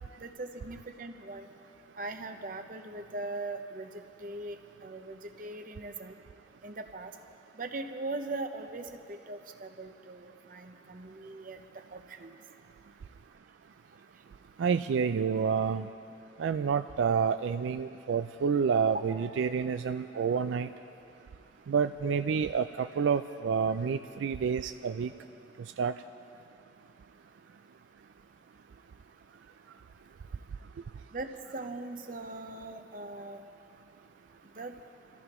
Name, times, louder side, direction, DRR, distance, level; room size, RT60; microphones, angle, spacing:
voice 1, 0.2-1.4 2.0-3.9 4.2-4.6 4.8-6.1 6.6-7.1 7.6-8.9 9.3-11.6 11.9-12.3 18.9-19.0 31.1-33.4 34.6-34.7, right 2 dB, 45° right, 6 dB, 0.8 m, -40 dB
voice 2, 14.6-15.9 16.4-20.7 21.7-25.1 25.8-25.9, right 6 dB, 85° right, 10 dB, 0.3 m, -28 dB
27.0 x 14.5 x 3.0 m, 2.6 s
head